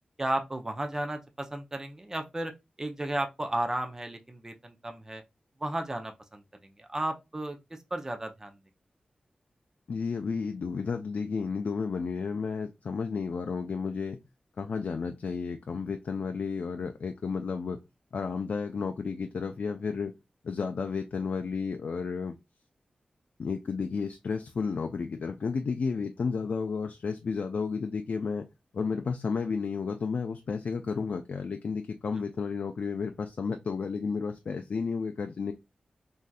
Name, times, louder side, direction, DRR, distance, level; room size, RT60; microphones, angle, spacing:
voice 1, 0.2-2.5 2.8-5.2 5.6-7.6 7.9-8.6, right 1 dB, 20° right, 0.5 m, -34 dB
voice 2, 9.9-14.2 14.6-17.8 18.1-20.1 20.4-22.4 23.4-28.5 28.7-35.5, left 5 dB, 65° left, 0.3 m, -32 dB
3.3 x 2.6 x 2.3 m
wide cardioid pair, 115°, 3 cm